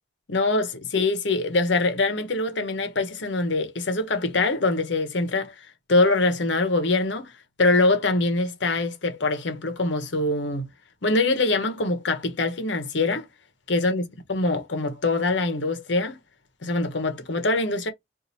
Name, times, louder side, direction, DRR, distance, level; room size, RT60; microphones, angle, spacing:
voice 1, 0.3-5.5 5.9-7.3 7.6-10.7 11.0-13.3 13.7-14.0 14.3-16.2 16.6-17.9, left 2 dB, 80° left, 0.9 m, -23 dB
2.8 x 2.6 x 3.9 m
head